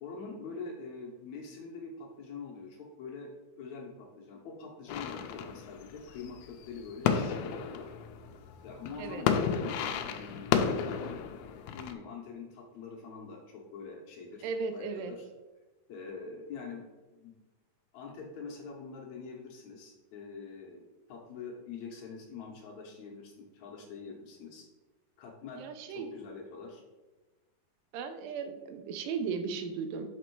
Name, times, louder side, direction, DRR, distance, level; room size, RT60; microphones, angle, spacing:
voice 1, 0.0-3.3 3.6-7.9 8.6-11.2 11.6-15.3 15.9-16.8 17.1-17.3 17.9-20.8 21.1-24.7 25.2-26.8, left 4 dB, 70° left, 0 dB, 1.9 m, -45 dB
sound 1, 4.9-11.9, left 7 dB, 85° left, 1.6 m, -32 dB
voice 2, 14.4-15.2 25.6-26.1 27.9-30.1, right 5 dB, 90° right, 8 dB, 2.4 m, -36 dB
6.0 x 5.2 x 4.5 m, 1.2 s
omnidirectional pair, 3.9 m